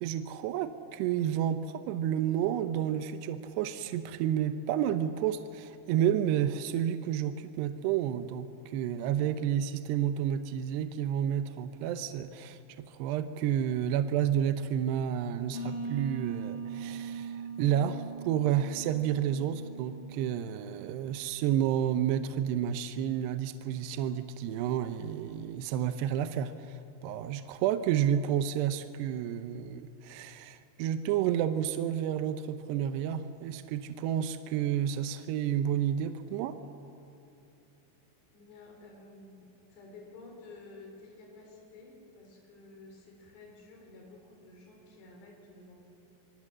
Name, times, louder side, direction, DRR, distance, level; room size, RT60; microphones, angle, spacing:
voice 1, 0.0-12.6 12.9-36.6, right 10 dB, 80° right, 10 dB, 2.7 m, -30 dB
sound 1, 15.5-21.1, right 5 dB, 55° left, 6.6 m, -40 dB
voice 2, 38.3-39.4 39.7-45.9, left 3 dB, 70° left, 0 dB, 6.2 m, -52 dB
26.5 x 24.5 x 7.5 m, 2.9 s
omnidirectional pair, 5.2 m